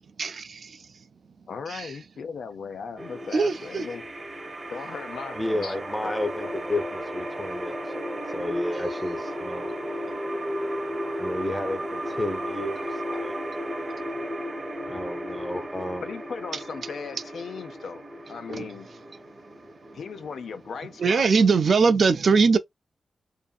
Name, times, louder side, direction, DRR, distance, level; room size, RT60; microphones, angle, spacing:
voice 1, 0.2-0.8 1.7-1.9 3.3-3.8 18.5-18.7 21.0-22.6, right 5 dB, 60° right, 0.3 m, -21 dB
voice 2, 1.5-4.0 4.7-6.2 6.4-6.5 16.0-18.9 19.9-21.3, left 5 dB, 85° left, 0.5 m, -37 dB
sound 1, 3.0-21.9, equal, 30° right, 0.8 m, -35 dB
voice 3, 5.3-7.8 8.3-9.8 11.2-13.4 14.9-16.1, left 1 dB, 15° left, 0.5 m, -31 dB
2.6 x 2.6 x 2.3 m
wide cardioid pair, 100°, 0 cm